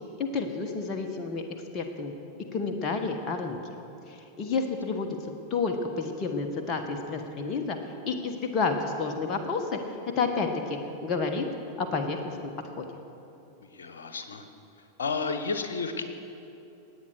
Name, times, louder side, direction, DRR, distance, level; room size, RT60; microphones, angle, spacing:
voice 1, 0.2-1.4 1.7-2.1 2.5-3.7 4.1-5.1 5.5-7.8 8.1-9.8 10.2-11.5 11.8-12.9, left 4 dB, 30° left, 4 dB, 1.3 m, -30 dB
voice 2, 13.6-14.5 15.0-16.0, left 4 dB, 65° left, 8 dB, 1.2 m, -32 dB
18.5 x 8.7 x 6.5 m, 2.8 s
figure-of-eight pair, 90°, 0 cm